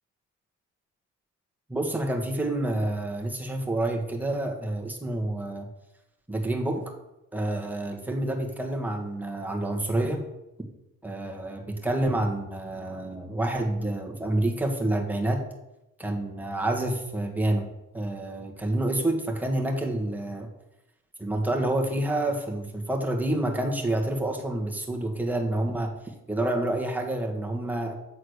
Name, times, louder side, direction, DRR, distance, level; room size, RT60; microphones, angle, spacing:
voice 1, 1.7-5.7 6.3-6.8 7.3-10.3 11.0-15.4 16.0-17.7 17.9-20.5 21.2-25.9 26.3-27.9, right 1 dB, 5° right, 0 dB, 1.6 m, -28 dB
8.1 x 4.0 x 6.5 m, 0.92 s
cardioid pair, 90°, 30 cm